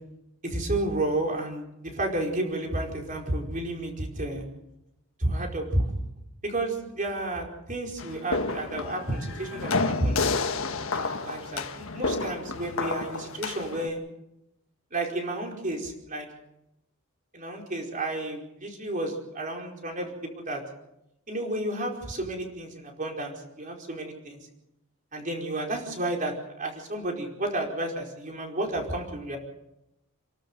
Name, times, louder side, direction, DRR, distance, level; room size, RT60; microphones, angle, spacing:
voice 1, 0.4-4.4 5.2-5.9 6.4-10.2 10.9-14.0 14.9-16.3 17.3-20.6 21.3-24.4 25.1-29.4, right 1 dB, 40° right, 1 dB, 4.8 m, -31 dB
sound 1, 8.0-13.9, left 3 dB, 70° left, 1.5 m, -30 dB
29.0 x 13.0 x 8.0 m, 0.87 s
head